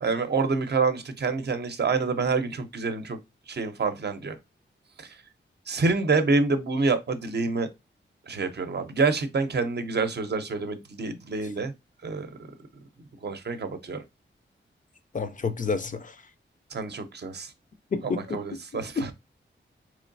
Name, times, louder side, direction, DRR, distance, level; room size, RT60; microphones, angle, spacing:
voice 1, 0.0-3.2 3.5-4.3 5.0-5.1 5.7-7.7 8.3-11.7 12.0-12.3 13.2-14.0 16.7-17.5 18.0-19.1, right 4 dB, 55° right, 0.6 m, -27 dB
voice 2, 15.1-16.2 17.9-18.4 19.0-19.1, left 4 dB, 40° left, 0.4 m, -29 dB
3.7 x 3.1 x 2.5 m
wide cardioid pair, 110°, 20 cm